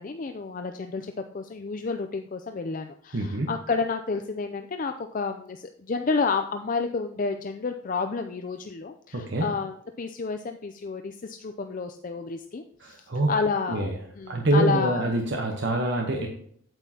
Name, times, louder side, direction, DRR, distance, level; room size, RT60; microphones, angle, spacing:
voice 1, 0.0-15.1, left 4 dB, 40° left, 6 dB, 0.4 m, -30 dB
voice 2, 3.1-3.5 9.1-9.4 12.8-13.3 13.7-13.9 14.3-16.3, right 1 dB, 55° right, 1 dB, 1.0 m, -25 dB
8.8 x 8.3 x 2.8 m, 0.64 s
head